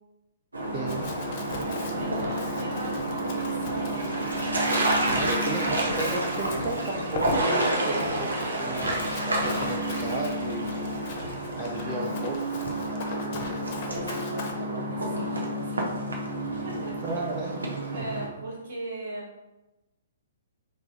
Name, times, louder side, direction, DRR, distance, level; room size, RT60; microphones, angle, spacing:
sound 1, 0.5-18.3, right 1 dB, 75° right, 0.6 m, -29 dB
voice 1, 0.7-1.2 5.1-9.0 9.3-10.7 11.6-12.7 17.0-18.1, right 2 dB, 25° right, -3 dB, 0.4 m, -34 dB
Run, 0.9-14.5, left 3 dB, 35° left, 0.5 m, -39 dB
voice 2, 1.5-3.0 3.3-4.7 11.8-12.3 13.1-14.4 14.8-16.3 16.6-17.2 17.9-19.3, right 1 dB, 50° right, -4 dB, 1.3 m, -40 dB
3.3 x 2.0 x 3.7 m, 1.0 s
figure-of-eight pair, 120°, 0 cm